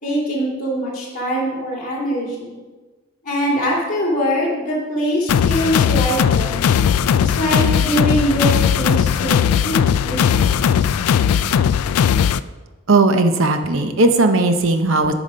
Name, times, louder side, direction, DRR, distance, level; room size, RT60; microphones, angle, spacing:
voice 1, 0.0-2.6 3.2-6.6 7.1-9.4 9.6-10.5, equal, 35° left, -6 dB, 2.6 m, -22 dB
sound 1, 5.3-12.4, left 8 dB, 85° left, 0.3 m, -17 dB
voice 2, 12.9-15.1, right 2 dB, 65° right, 7 dB, 0.7 m, -16 dB
8.9 x 5.0 x 5.4 m, 1.3 s
head